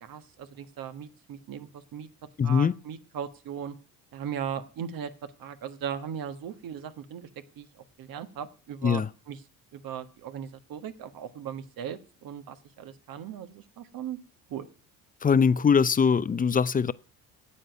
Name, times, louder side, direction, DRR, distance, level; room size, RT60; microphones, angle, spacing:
voice 1, 0.0-2.1 2.4-3.7 4.1-7.3 7.6-7.7 8.0-9.4 9.7-14.2 14.5-14.7, right 8 dB, 60° right, 1.5 m, -38 dB
voice 2, 2.4-2.7 8.8-9.1 15.2-16.9, left 6 dB, 20° left, 0.6 m, -22 dB
10.0 x 8.0 x 9.2 m
supercardioid pair, 75°, 39 cm